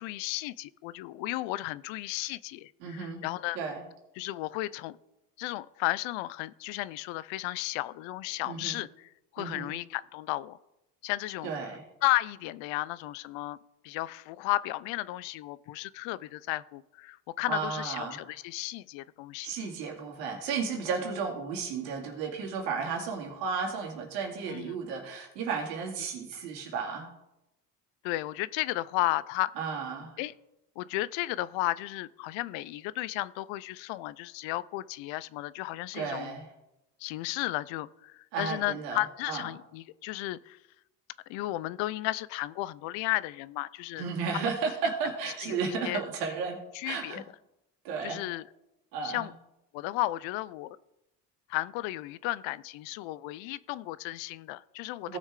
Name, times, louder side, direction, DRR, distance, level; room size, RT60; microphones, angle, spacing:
voice 1, 0.0-3.6 4.2-5.0 5.4-10.6 11.0-11.5 12.0-13.6 13.8-19.5 24.5-24.8 28.0-29.5 30.2-30.3 30.8-36.4 37.0-40.6 41.3-44.1 44.3-44.5 45.4-46.0 46.7-47.2 48.0-48.4 49.0-49.3 49.7-50.8 51.5-55.2, left 17 dB, 70° left, 19 dB, 0.6 m, -34 dB
voice 2, 2.8-3.2 3.5-3.8 8.4-8.8 9.4-9.7 11.4-11.8 17.5-18.2 18.6-18.7 19.4-27.1 29.6-30.2 35.9-36.5 38.3-39.0 39.3-39.5 44.0-46.6 46.8-47.2 47.8-48.2 48.9-49.3 55.1-55.2, right 5 dB, 85° right, 1 dB, 2.6 m, -33 dB
16.5 x 6.2 x 3.7 m, 0.90 s
hypercardioid pair, 65°, 48 cm